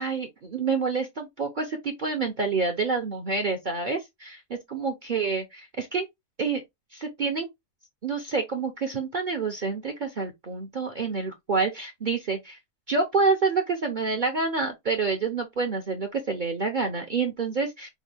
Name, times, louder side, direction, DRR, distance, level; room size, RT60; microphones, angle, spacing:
voice 1, 0.0-6.1 6.4-6.6 6.9-7.5 8.0-12.6 12.9-17.9, right 4 dB, 60° right, 0.5 m, -28 dB
5.3 x 2.2 x 3.3 m
omnidirectional pair, 1.7 m